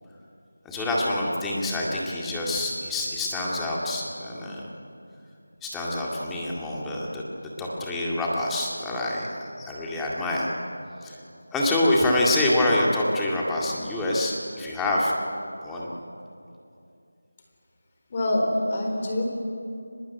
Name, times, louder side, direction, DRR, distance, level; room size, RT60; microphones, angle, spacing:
voice 1, 0.6-4.6 5.6-7.2 7.6-10.5 11.0-11.2 11.5-15.1 15.6-15.9, left 1 dB, 5° left, -4 dB, 2.1 m, -26 dB
voice 2, 18.1-19.2, left 1 dB, 25° left, 1 dB, 4.2 m, -25 dB
23.5 x 20.5 x 9.4 m, 2.6 s
figure-of-eight pair, 170°, 0 cm